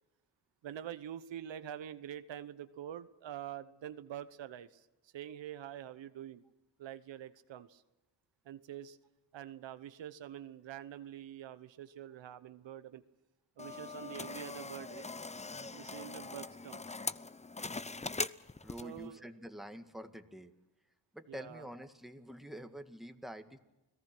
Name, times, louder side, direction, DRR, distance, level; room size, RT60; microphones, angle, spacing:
voice 1, 0.6-6.4 6.8-7.8 8.4-9.0 9.3-13.0 13.6-15.1 15.7-16.8 18.8-19.2 21.3-21.7, right 10 dB, 80° right, 12 dB, 1.1 m, -46 dB
sound 1, 13.6-19.0, left 3 dB, 15° left, 0.6 m, -41 dB
voice 2, 18.6-20.5 21.1-23.6, equal, ahead, 7 dB, 1.9 m, -47 dB
29.5 x 18.5 x 6.1 m, 1.1 s
cardioid pair, 65°, 44 cm